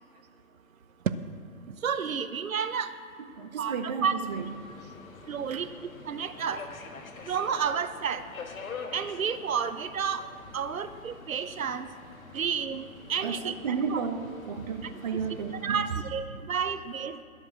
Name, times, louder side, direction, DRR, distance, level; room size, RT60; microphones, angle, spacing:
voice 1, 1.6-2.9 3.6-4.2 5.3-5.7 6.1-6.6 7.3-8.2 8.9-10.2 10.5-11.9 12.3-13.5 13.9-14.0 15.6-17.2, right 7 dB, 70° right, 12 dB, 0.9 m, -30 dB
voice 2, 3.2-4.5 4.8-4.9 5.5-5.6 13.2-15.9 16.3-16.4, right 6 dB, 30° right, 6 dB, 0.6 m, -33 dB
Subway metro underground, 4.2-15.8, left 4 dB, 70° left, 1.6 m, -46 dB
13.0 x 7.1 x 6.9 m, 2.7 s
figure-of-eight pair, 145°, 43 cm